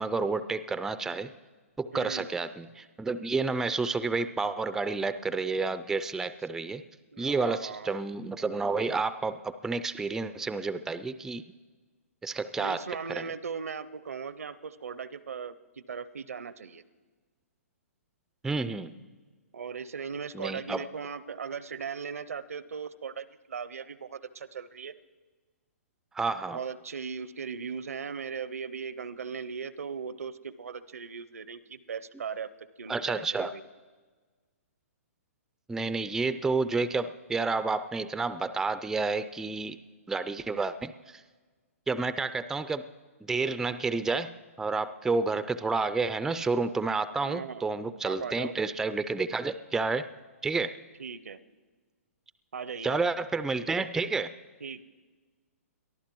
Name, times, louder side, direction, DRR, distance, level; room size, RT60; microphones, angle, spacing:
voice 1, 0.0-1.3 1.8-6.8 7.2-11.4 12.2-12.8 13.2-13.3 18.4-18.9 20.3-20.8 26.1-26.6 32.9-33.5 35.7-39.8 40.1-41.2 41.9-42.9 43.2-44.3 44.6-50.1 50.4-50.8 52.8-54.3, right 4 dB, 5° right, 13 dB, 0.3 m, -30 dB
voice 2, 1.9-2.3 7.1-8.0 12.6-16.8 19.5-24.9 26.5-32.5 32.8-33.6 47.2-47.6 48.0-48.6 51.0-51.4 52.5-53.0 54.6-54.8, right 6 dB, 75° right, 17 dB, 0.6 m, -38 dB
23.0 x 14.0 x 3.0 m, 1.4 s
hypercardioid pair, 125°, 8 cm